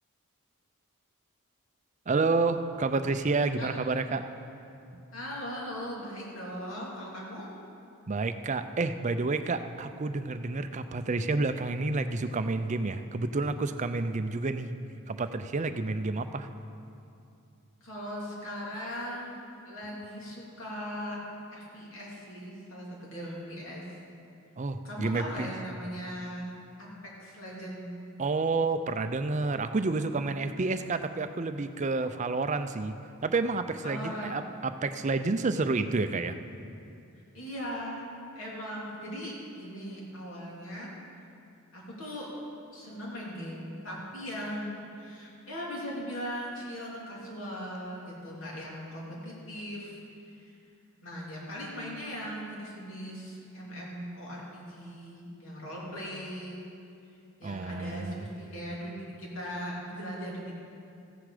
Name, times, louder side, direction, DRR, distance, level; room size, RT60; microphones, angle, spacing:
voice 1, 2.1-4.3 8.1-14.7 15.1-16.5 24.6-25.5 28.2-32.9 33.2-36.4 57.4-58.3, right 3 dB, 30° right, 9 dB, 0.5 m, -29 dB
voice 2, 5.1-7.5 17.8-21.2 21.5-23.8 24.8-26.5 26.8-26.9 27.2-27.9 33.8-34.4 37.1-38.1 38.3-40.9 41.7-42.3 42.7-50.0 50.3-50.5 51.0-56.6 57.4-60.5, equal, 60° left, -5 dB, 3.1 m, -39 dB
15.0 x 9.6 x 5.0 m, 2.6 s
head